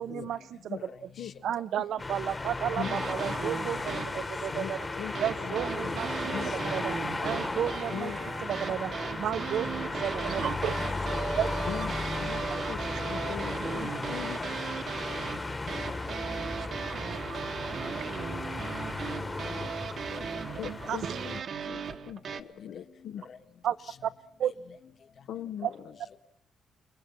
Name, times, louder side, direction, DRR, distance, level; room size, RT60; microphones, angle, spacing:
voice 1, 0.0-0.4 0.6-0.8 1.4-4.0 4.3-4.8 5.2-7.0 7.2-8.1 8.4-8.9 9.2-10.7 11.4-11.5 20.9-21.2 23.6-23.8 24.0-24.1 24.4-24.5 25.6-25.7, right 10 dB, 70° right, 15 dB, 0.8 m, -32 dB
voice 2, 0.7-1.3 1.8-1.9 2.2-2.8 3.7-4.2 4.5-4.8 6.1-6.6 7.3-7.5 7.8-7.9 8.6-8.8 9.3-9.8 10.4-10.8 11.1-11.2 12.3-12.5 13.1-13.4 14.4-14.5 15.1-15.2 15.7-16.7 17.3-17.5 18.4-19.2 19.5-19.7 20.1-20.6 22.3-23.4 23.8-24.0 24.4-24.8 25.6-26.2, left 6 dB, 50° left, 8 dB, 1.5 m, -50 dB
sound 1, 2.0-21.4, left 2 dB, 20° left, 1.2 m, -35 dB
voice 3, 2.8-3.3 3.6-4.0 4.5-5.6 5.8-6.0 6.3-7.4 7.9-8.3 11.7-12.4 12.7-14.4 20.6-21.4 21.7-23.2 25.3-26.0, left 9 dB, 80° left, 12 dB, 0.9 m, -41 dB
sound 2, 2.8-4.3 5.1-22.4, right 6 dB, 50° right, 1.2 m, -37 dB
29.5 x 21.5 x 6.2 m, 0.77 s
cardioid pair, 145°, 0 cm